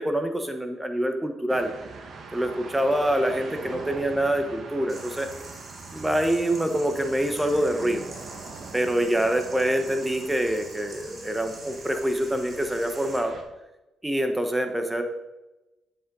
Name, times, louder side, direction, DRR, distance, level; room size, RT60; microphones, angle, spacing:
voice 1, 0.0-1.7 2.3-5.3 5.9-8.0 8.7-13.4 14.0-15.0, right 1 dB, 10° right, 6 dB, 1.3 m, -25 dB
sound 1, 1.5-13.4, right 4 dB, 55° right, 1.6 m, -43 dB
sound 2, 4.9-13.2, right 2 dB, 35° right, 2.6 m, -46 dB
9.5 x 7.8 x 3.9 m, 1.0 s
cardioid pair, 90°, 0 cm